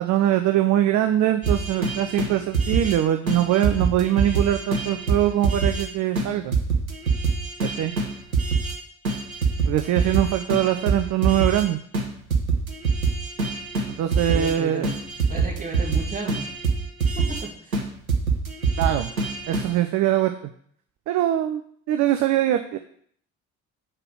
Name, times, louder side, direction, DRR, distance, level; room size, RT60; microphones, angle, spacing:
voice 1, 0.0-6.5 7.6-7.9 9.7-11.8 13.9-14.9 18.8-19.1 19.5-20.3 21.1-21.6 21.9-22.8, right 12 dB, 45° right, 7 dB, 0.6 m, -22 dB
sound 1, 1.4-3.0 3.3-5.9 6.1-6.3 6.5-8.8 9.0-11.7 11.9-14.5 14.8-17.4 17.7-19.7, right 4 dB, 85° right, 0.8 m, -25 dB
voice 2, 14.3-15.0 15.3-16.5 17.1-17.8, right 3 dB, 20° right, -2 dB, 2.2 m, -34 dB
7.3 x 4.8 x 4.8 m, 0.63 s
figure-of-eight pair, 45°, 41 cm